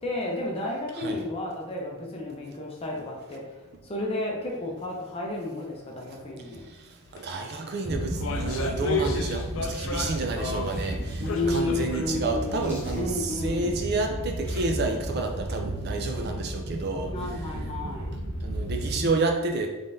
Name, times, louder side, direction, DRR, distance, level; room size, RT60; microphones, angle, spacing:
voice 1, 0.0-3.4 3.8-6.6 11.2-13.8 17.1-18.1, left 2 dB, 25° left, -1 dB, 0.7 m, -32 dB
voice 2, 6.1-17.1 18.4-19.7, right 3 dB, 50° right, 3 dB, 0.4 m, -30 dB
sound 1, 7.1-7.2 7.5-10.9 11.2-12.2 12.4-12.5 13.3-13.4, left 3 dB, 65° left, 0.4 m, -32 dB
sound 2, 7.8-19.1, right 1 dB, 65° right, 0.8 m, -33 dB
sound 3, 10.2-14.8, left 1 dB, 10° left, 1.0 m, -52 dB
3.7 x 3.3 x 2.6 m, 1.1 s
head